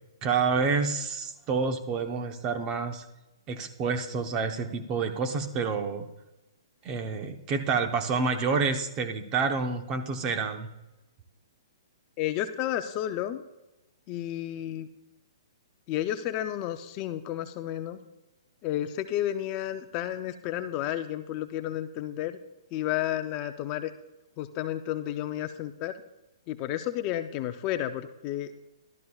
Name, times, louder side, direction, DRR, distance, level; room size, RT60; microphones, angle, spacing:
voice 1, 0.2-3.0 3.5-6.1 6.8-10.7, right 4 dB, 25° right, 6 dB, 0.9 m, -28 dB
voice 2, 12.2-13.4 14.1-14.9 15.9-18.0 18.6-22.4 22.7-23.9 24.4-25.9 26.5-28.5, left 12 dB, 30° left, 8 dB, 0.6 m, -31 dB
13.5 x 13.0 x 2.4 m, 0.96 s
hypercardioid pair, 155°, 3 cm